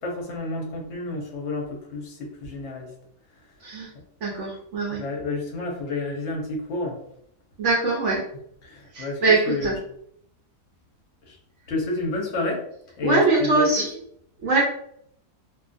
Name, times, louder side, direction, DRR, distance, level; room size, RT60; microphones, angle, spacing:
voice 1, 0.0-2.9 4.9-7.0 8.6-9.7 11.3-11.4 11.7-12.6 13.0-13.8, left 2 dB, 55° left, -1 dB, 0.9 m, -29 dB
voice 2, 4.2-5.0 7.6-8.2 8.9-9.7 13.0-13.9 14.4-14.6, right 3 dB, 60° right, -3 dB, 0.8 m, -22 dB
2.6 x 2.4 x 2.5 m, 0.69 s
omnidirectional pair, 1.7 m